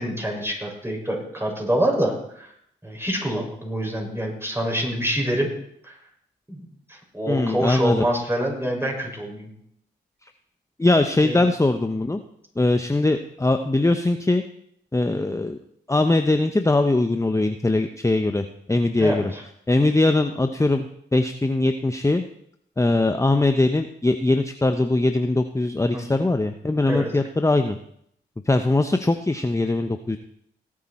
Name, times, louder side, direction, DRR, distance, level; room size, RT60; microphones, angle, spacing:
voice 1, 0.0-2.5 2.8-5.5 5.8-6.0 6.5-6.6 6.9-9.5 11.2-11.4 19.0-19.4 25.9-26.1 26.9-27.1, right 1 dB, 10° right, 0 dB, 6.0 m, -26 dB
voice 2, 7.3-8.1 10.8-12.2 12.6-14.4 14.9-15.6 15.9-19.3 19.7-20.9 21.1-22.2 22.8-27.8 28.5-30.2, left 2 dB, 15° left, 8 dB, 0.9 m, -21 dB
19.0 x 8.7 x 4.4 m, 0.71 s
supercardioid pair, 45°, 21 cm